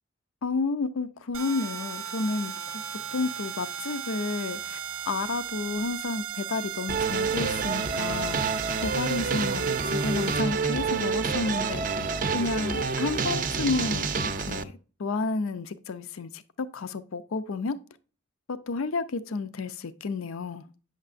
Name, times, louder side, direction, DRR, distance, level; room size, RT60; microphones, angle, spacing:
voice 1, 0.4-4.8 5.1-11.9 12.3-17.8 18.5-20.6, left 3 dB, 85° left, 0.5 m, -31 dB
sound 1, 1.3-10.4, right 10 dB, 90° right, 0.5 m, -36 dB
sound 2, 6.9-14.6, right 4 dB, 40° right, 0.5 m, -28 dB
8.8 x 6.5 x 2.5 m
head